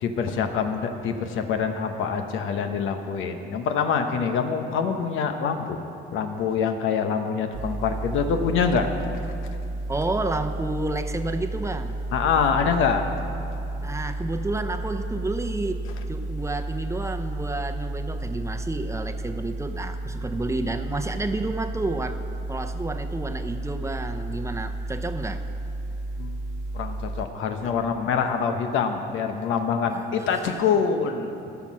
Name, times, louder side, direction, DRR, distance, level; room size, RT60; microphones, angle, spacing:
voice 1, 0.0-5.8 6.1-8.9 12.1-13.3 26.2-26.4 26.7-31.4, left 6 dB, 85° left, 6 dB, 0.9 m, -25 dB
sound 1, 7.5-27.3, right 2 dB, 90° right, 1.4 m, -32 dB
voice 2, 9.9-12.0 13.8-22.2 22.5-25.4 27.6-27.8 29.9-30.6, right 2 dB, 15° right, 7 dB, 0.7 m, -30 dB
13.5 x 5.9 x 6.1 m, 2.6 s
cardioid pair, 90°, 20 cm